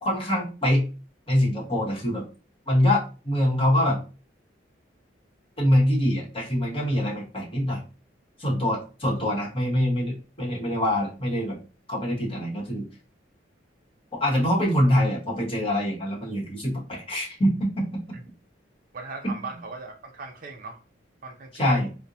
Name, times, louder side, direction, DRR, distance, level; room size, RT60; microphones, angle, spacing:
voice 1, 0.0-0.8 1.3-2.2 2.7-4.0 5.6-7.8 8.4-11.5 11.9-12.9 14.1-18.0 19.2-19.4 21.5-21.9, equal, 30° left, -4 dB, 1.1 m, -24 dB
voice 2, 18.9-20.8 21.2-21.8, right 3 dB, 45° right, 5 dB, 0.4 m, -38 dB
4.3 x 2.1 x 2.6 m, 0.34 s
head